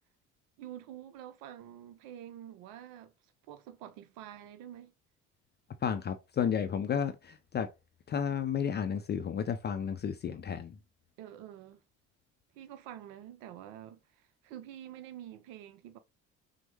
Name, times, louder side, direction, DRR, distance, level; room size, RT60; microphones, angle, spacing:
voice 1, 0.6-3.1 3.5-4.9 11.2-11.8 12.5-16.0, right 11 dB, 60° right, 0.6 m, -47 dB
voice 2, 5.8-7.7 8.1-10.8, left 7 dB, 30° left, 0.5 m, -32 dB
6.0 x 2.1 x 3.1 m
hypercardioid pair, 55°, 38 cm